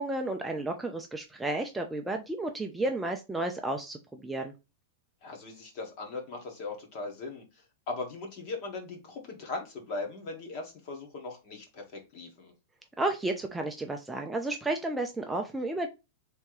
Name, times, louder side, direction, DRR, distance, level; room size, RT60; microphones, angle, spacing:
voice 1, 0.0-4.5 13.0-15.9, right 2 dB, 5° right, 3 dB, 0.4 m, -32 dB
voice 2, 5.2-12.5, left 3 dB, 40° left, 2 dB, 1.5 m, -39 dB
3.4 x 3.0 x 4.7 m, 0.27 s
supercardioid pair, 160°, 0 cm